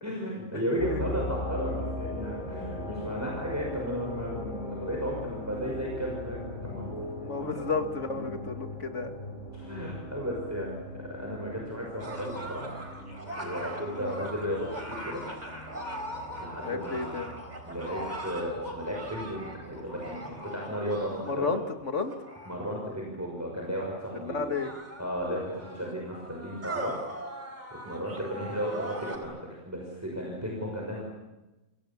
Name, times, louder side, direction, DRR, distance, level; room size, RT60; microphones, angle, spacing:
voice 1, 0.0-7.0 7.4-7.5 9.5-12.7 13.4-15.2 16.4-17.2 17.6-21.5 22.5-24.5 25.0-27.5 27.8-31.0, equal, 10° right, -2 dB, 6.0 m, -34 dB
sound 1, 0.8-20.3, left 1 dB, 85° left, 6.0 m, -40 dB
voice 2, 7.2-9.1 14.0-14.2 16.6-17.3 21.2-22.1 24.2-24.7, left 4 dB, 65° left, 6 dB, 2.5 m, -32 dB
sound 2, 12.0-22.8 23.7-23.8 24.4-29.2, right 1 dB, 35° right, 4.7 m, -40 dB
29.0 x 26.5 x 7.3 m, 1.0 s
omnidirectional pair, 1.3 m